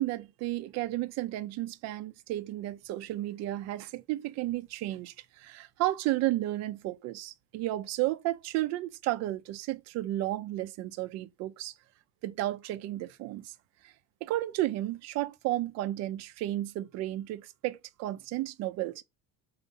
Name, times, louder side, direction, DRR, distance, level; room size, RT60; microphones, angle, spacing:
voice 1, 0.0-11.7 12.2-13.5 13.8-13.9 14.2-19.0, right 16 dB, 55° right, 0.7 m, -33 dB
4.8 x 4.1 x 5.5 m
cardioid pair, 180°, 32 cm